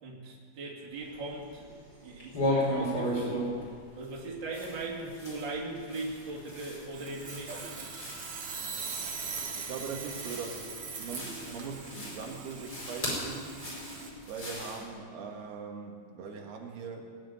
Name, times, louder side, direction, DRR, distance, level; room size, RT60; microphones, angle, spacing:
voice 1, 0.0-1.7 2.0-3.4 4.0-7.6, right 2 dB, 30° right, -3 dB, 2.9 m, -39 dB
sound 1, 0.9-1.8 2.0-14.9, equal, 25° left, 5.4 m, -37 dB
Sawing, 6.9-14.1, right 4 dB, 65° right, 1.1 m, -40 dB
voice 2, 9.6-13.5 14.3-17.2, right 5 dB, 85° right, 1 dB, 3.7 m, -41 dB
20.0 x 7.7 x 9.4 m, 2.1 s
omnidirectional pair, 4.5 m